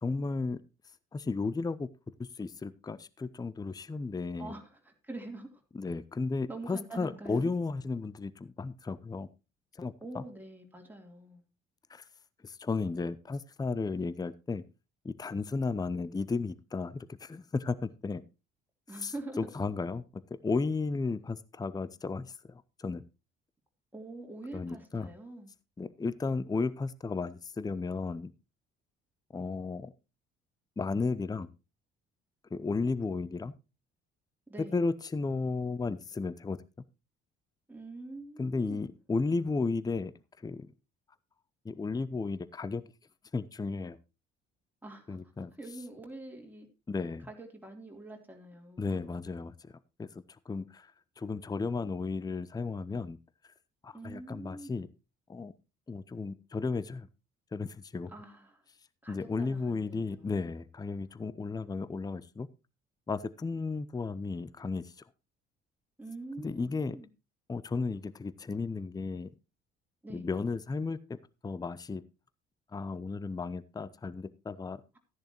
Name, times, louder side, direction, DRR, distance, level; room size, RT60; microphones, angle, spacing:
voice 1, 0.0-0.6 1.1-1.9 2.2-4.5 5.7-9.3 9.8-10.2 11.9-12.0 12.4-14.6 15.0-18.2 19.0-23.0 24.5-25.1 25.8-28.3 29.3-29.9 30.8-31.5 32.5-33.5 34.7-36.6 38.4-40.1 40.4-40.7 41.6-42.8 43.3-44.0 45.1-45.5 46.9-47.3 48.8-49.7 50.0-53.2 53.8-54.9 55.3-55.5 55.9-57.1 57.5-58.1 59.1-62.5 63.1-64.9 66.4-67.0 67.5-69.3 70.1-72.0 72.7-74.8, left 4 dB, 15° left, 0.6 m, -34 dB
voice 2, 4.4-5.6 6.5-7.5 10.0-11.4 18.9-19.5 23.9-25.5 34.5-34.8 37.7-38.8 39.3-39.4 44.8-45.2 45.6-46.7 47.2-49.0 53.9-54.8 58.1-58.6 59.0-60.4 66.0-67.1 70.0-70.3, right 2 dB, 5° right, 3.2 m, -45 dB
14.0 x 10.5 x 3.0 m
hypercardioid pair, 50°, 29 cm